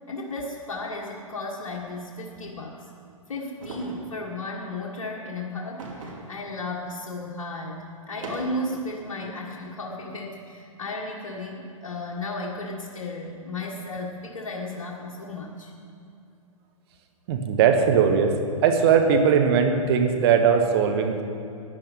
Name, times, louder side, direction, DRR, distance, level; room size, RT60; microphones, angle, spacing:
voice 1, 0.1-2.8 3.3-15.7, left 2 dB, 60° left, -1 dB, 1.6 m, -34 dB
sound 1, 3.6-4.1 5.8-6.4 6.8-6.9 8.0-8.8, right 3 dB, 65° right, 2.7 m, -39 dB
voice 2, 17.3-18.3 18.6-21.2, right 6 dB, 45° right, 5 dB, 1.4 m, -19 dB
15.5 x 10.0 x 5.3 m, 2.6 s
hypercardioid pair, 120°, 18 cm